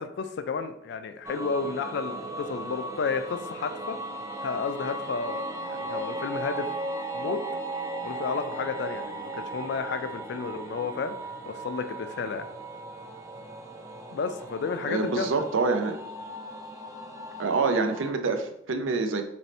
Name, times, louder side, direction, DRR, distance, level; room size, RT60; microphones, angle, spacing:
voice 1, 0.0-4.0 4.4-6.7 7.1-7.4 8.0-11.2 11.4-12.5 14.1-15.3, left 5 dB, 60° left, 9 dB, 0.3 m, -32 dB
sound 1, 1.2-18.1, right 2 dB, 15° right, 0.3 m, -37 dB
voice 2, 14.9-16.0 17.4-19.2, right 4 dB, 80° right, 7 dB, 0.5 m, -26 dB
3.1 x 2.6 x 4.2 m, 0.76 s
head